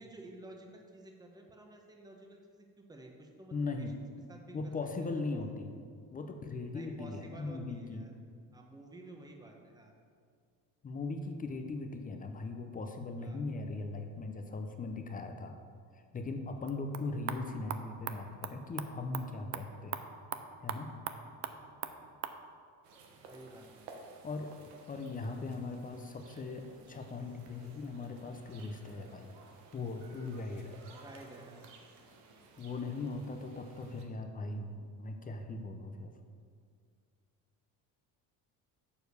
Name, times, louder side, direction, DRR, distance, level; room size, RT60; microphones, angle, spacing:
voice 1, 0.0-3.9 4.3-4.7 5.0-5.2 6.7-8.1 8.5-9.9 13.2-13.4 23.2-23.9 30.9-31.7, right 1 dB, 10° right, 2 dB, 0.9 m, -52 dB
voice 2, 3.5-4.0 4.5-5.7 6.1-8.0 10.8-15.5 15.9-20.0 20.6-20.9 24.2-24.5 24.9-29.3 29.7-30.8 32.6-36.1, left 3 dB, 20° left, 5 dB, 0.6 m, -39 dB
sound 1, 16.6-22.4, right 9 dB, 40° right, 0.5 m, -43 dB
sound 2, 22.8-34.0, right 3 dB, 75° right, 1.2 m, -56 dB
7.0 x 4.4 x 6.7 m, 2.2 s
cardioid pair, 120°, 40 cm